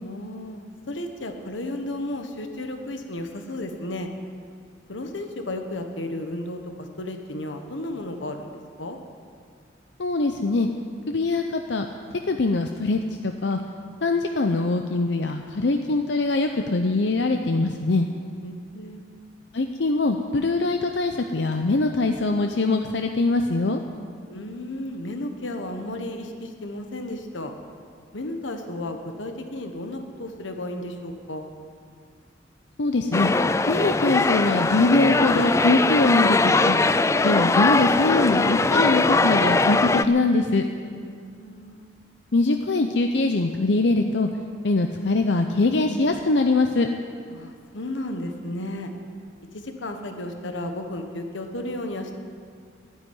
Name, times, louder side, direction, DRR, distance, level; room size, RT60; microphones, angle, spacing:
voice 1, 0.0-4.1 4.9-9.0 18.4-19.0 24.3-27.5 28.1-31.5 41.0-41.9 47.3-48.9 49.5-52.2, left 1 dB, 85° left, 5 dB, 1.3 m, -33 dB
voice 2, 10.0-10.7 11.1-11.9 12.3-13.6 14.0-18.1 19.5-23.8 32.8-33.3 33.7-36.8 37.2-40.6 42.3-44.3 44.6-46.9, left 2 dB, 70° left, 5 dB, 0.7 m, -22 dB
sound 1, 33.1-40.1, left 3 dB, 15° left, 0.3 m, -21 dB
12.0 x 10.0 x 9.5 m, 2.1 s
head